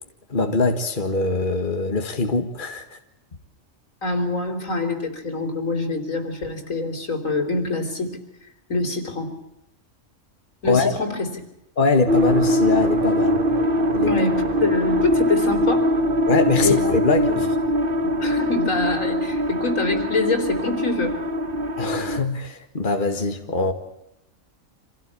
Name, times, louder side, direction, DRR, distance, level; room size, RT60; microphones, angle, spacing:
voice 1, 0.3-3.0 10.7-10.9 11.8-13.4 13.9-14.1 16.3-17.6 21.8-23.7, left 3 dB, 40° left, 6 dB, 2.0 m, -22 dB
voice 2, 4.0-8.2 8.7-9.3 10.6-11.4 14.0-15.9 16.6-16.8 17.3-17.4 18.0-21.1, left 3 dB, 85° left, 4 dB, 4.4 m, -25 dB
sound 1, 12.1-22.2, equal, 45° right, 1.7 m, -22 dB
27.0 x 16.5 x 8.6 m, 0.89 s
omnidirectional pair, 1.3 m